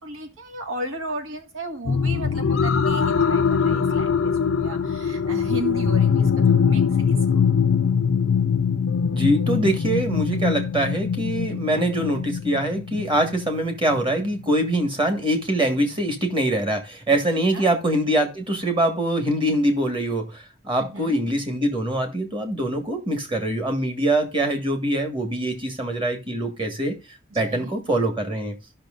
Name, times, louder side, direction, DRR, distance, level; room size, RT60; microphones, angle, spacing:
voice 1, 0.0-7.5 11.5-11.8 17.1-17.7 20.8-21.2 27.3-27.7, right 2 dB, 80° right, 1.8 m, -35 dB
sound 1, 1.9-15.2 15.8-15.9, left 6 dB, 85° left, 0.5 m, -22 dB
voice 2, 9.1-27.0 27.3-28.5, right 1 dB, 25° right, 1.5 m, -23 dB
15.0 x 5.9 x 2.5 m
head